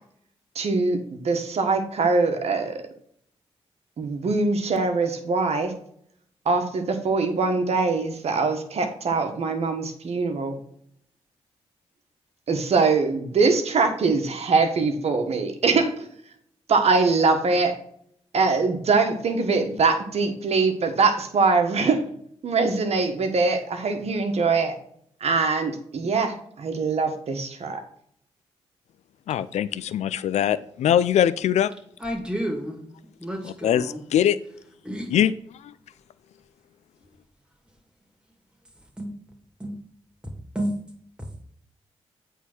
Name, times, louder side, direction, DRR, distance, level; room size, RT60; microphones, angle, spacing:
voice 1, 0.5-2.8 4.0-5.7 6.4-10.6 12.5-16.1 16.7-17.7 18.3-22.0 22.4-24.8 25.2-27.8, right 4 dB, 65° right, 1.3 m, -23 dB
voice 2, 29.3-31.7 33.4-34.4 35.1-35.3, left 10 dB, 75° left, 0.4 m, -22 dB
voice 3, 32.0-32.8 33.2-34.0 34.8-35.1 39.0-39.2 39.6-39.8 40.5-40.8, equal, 10° right, 2.5 m, -30 dB
8.3 x 3.7 x 6.1 m
supercardioid pair, 50°, 12 cm